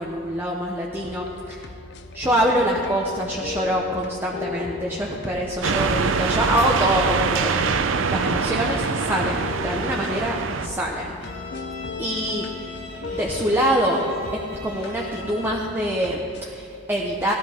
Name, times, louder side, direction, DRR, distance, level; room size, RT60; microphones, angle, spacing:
voice 1, 0.0-1.7 2.1-7.5 8.0-11.1 12.0-12.8 13.1-17.3, equal, 10° right, -3 dB, 0.9 m, -25 dB
sound 1, 1.0-16.4, left 4 dB, 60° left, 0.6 m, -37 dB
sound 2, 5.6-10.7, right 5 dB, 85° right, 0.6 m, -24 dB
Bowed string instrument, 11.2-15.8, left 3 dB, 80° left, 2.8 m, -40 dB
16.0 x 12.5 x 3.6 m, 2.4 s
head